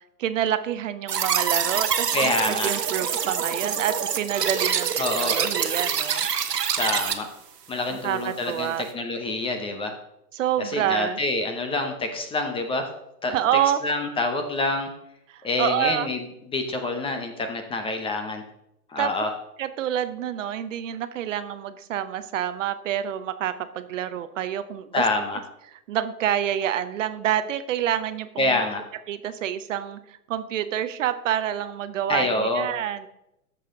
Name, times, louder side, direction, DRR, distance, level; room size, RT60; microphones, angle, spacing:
voice 1, 0.2-4.9 5.2-6.3 8.0-8.8 10.3-11.2 13.3-13.8 15.3-16.1 19.0-19.1 19.6-25.0 25.9-28.6 29.1-33.0, right 10 dB, 50° right, 11 dB, 0.9 m, -27 dB
sound 1, 1.1-7.1, right 7 dB, 80° right, 1.3 m, -25 dB
voice 2, 2.1-2.7 5.0-5.4 6.8-7.3 7.7-9.9 10.7-12.9 13.2-13.3 13.8-14.9 15.4-18.4 18.9-19.3 24.9-25.4 28.4-28.8 32.1-32.7, left 2 dB, 10° left, 6 dB, 0.9 m, -26 dB
13.5 x 6.7 x 3.8 m, 0.83 s
hypercardioid pair, 125°, 48 cm